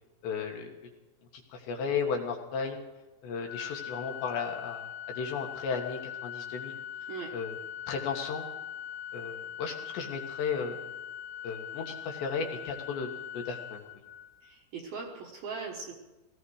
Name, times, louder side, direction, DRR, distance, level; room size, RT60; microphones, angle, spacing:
voice 1, 0.2-0.7 1.3-2.8 3.2-6.8 7.3-7.6 7.9-8.4 9.1-10.8 11.4-13.1 13.3-13.8, left 5 dB, 65° left, 2 dB, 3.3 m, -34 dB
Organ, 3.5-14.5, left 10 dB, 85° left, 3.8 m, -41 dB
voice 2, 7.1-7.4 14.4-15.9, right 5 dB, 65° right, 0 dB, 2.5 m, -40 dB
18.5 x 15.0 x 4.9 m, 1.1 s
omnidirectional pair, 6.0 m